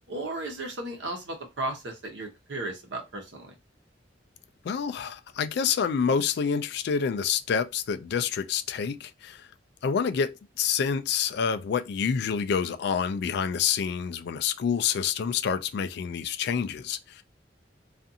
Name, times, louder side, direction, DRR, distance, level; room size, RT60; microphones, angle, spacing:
voice 1, 0.1-3.6, right 2 dB, 80° right, 0.9 m, -35 dB
voice 2, 4.6-9.5 9.8-10.3 10.6-17.2, left 6 dB, 65° left, 0.3 m, -27 dB
2.5 x 2.5 x 2.7 m
head